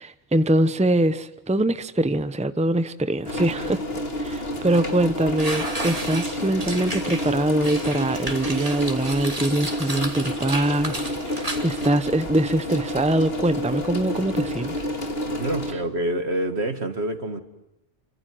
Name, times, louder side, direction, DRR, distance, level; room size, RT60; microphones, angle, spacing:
voice 1, 0.0-3.8 4.2-14.7, right 1 dB, 5° right, 1.0 m, -23 dB
sound 1, 3.2-15.7, equal, 60° left, 3.1 m, -29 dB
sound 2, 4.7-4.9 5.4-11.9, right 2 dB, 30° right, 2.9 m, -33 dB
voice 2, 15.3-17.4, right 1 dB, 70° right, 2.5 m, -27 dB
29.5 x 26.0 x 7.8 m
omnidirectional pair, 1.1 m